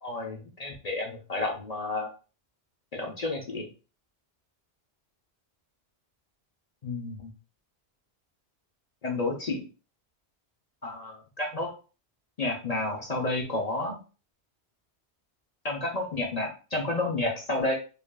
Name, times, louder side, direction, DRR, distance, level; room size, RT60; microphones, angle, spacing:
voice 1, 0.0-2.1 2.9-3.7 6.8-7.3 9.0-9.7 10.8-11.7 12.4-14.0 15.6-17.7, left 2 dB, 45° left, 0 dB, 0.7 m, -31 dB
5.0 x 2.5 x 2.3 m, 0.35 s
omnidirectional pair, 1.1 m